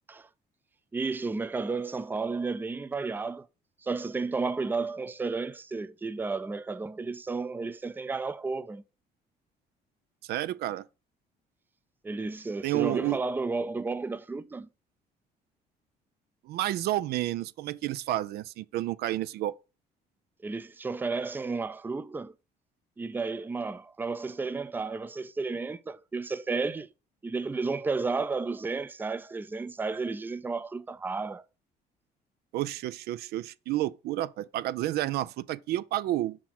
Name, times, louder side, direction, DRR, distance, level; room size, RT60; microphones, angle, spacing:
voice 1, 0.9-3.5 3.8-8.8 12.0-14.7 20.4-22.3 23.0-26.9 27.2-31.4, right 4 dB, 10° right, 0.4 m, -32 dB
voice 2, 10.2-10.9 12.6-13.2 16.4-19.5 32.5-36.4, right 15 dB, 70° right, 0.4 m, -30 dB
5.6 x 4.3 x 5.9 m
cardioid pair, 110°, 17 cm